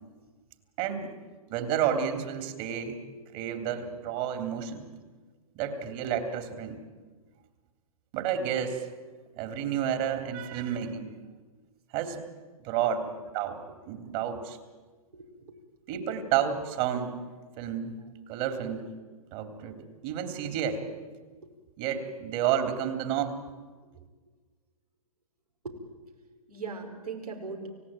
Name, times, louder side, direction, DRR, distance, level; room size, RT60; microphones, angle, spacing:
voice 1, 0.8-1.1 1.5-3.0 3.3-4.9 5.5-6.8 8.1-8.8 9.3-11.1 11.9-12.2 12.6-13.1 13.3-13.6 13.9-14.6 15.9-17.2 17.6-18.0 18.3-18.8 19.3-20.8 21.8-23.4, right 9 dB, 40° right, 7 dB, 3.3 m, -30 dB
voice 2, 15.1-15.5 15.9-16.0 18.7-18.8 23.9-24.0 25.6-25.7 26.5-27.7, right 4 dB, 85° right, 2 dB, 5.5 m, -39 dB
29.5 x 16.5 x 9.1 m, 1.4 s
hypercardioid pair, 130°, 19 cm